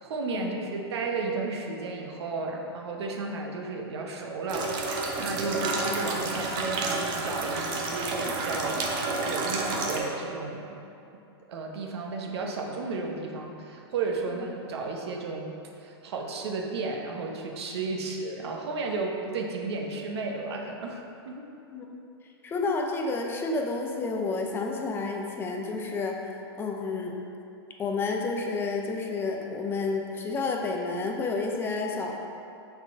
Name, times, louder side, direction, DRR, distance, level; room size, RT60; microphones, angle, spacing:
voice 1, 0.0-8.8 9.2-10.7 11.5-21.5, right 3 dB, 70° right, 1 dB, 1.0 m, -33 dB
sound 1, 4.5-10.0, right 3 dB, 30° right, 0.7 m, -30 dB
voice 2, 22.4-26.2 26.6-27.1 27.8-32.1, left 3 dB, 15° left, 1 dB, 0.6 m, -30 dB
6.1 x 4.1 x 4.5 m, 2.7 s
hypercardioid pair, 140°, 14 cm